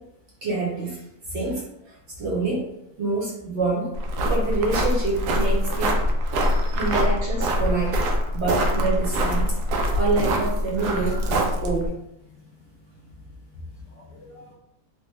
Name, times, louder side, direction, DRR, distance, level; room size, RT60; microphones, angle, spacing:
voice 1, 0.4-1.0 1.3-4.0 4.3-6.0 6.7-8.0 8.3-9.6 9.9-11.9, right 3 dB, 50° right, -5 dB, 0.9 m, -27 dB
sound 1, 3.9-11.9, equal, 80° right, 1.1 m, -24 dB
voice 2, 6.4-6.9 10.8-11.4 13.9-14.5, equal, 65° left, -3 dB, 0.8 m, -43 dB
3.2 x 2.3 x 3.1 m, 0.82 s
omnidirectional pair, 1.7 m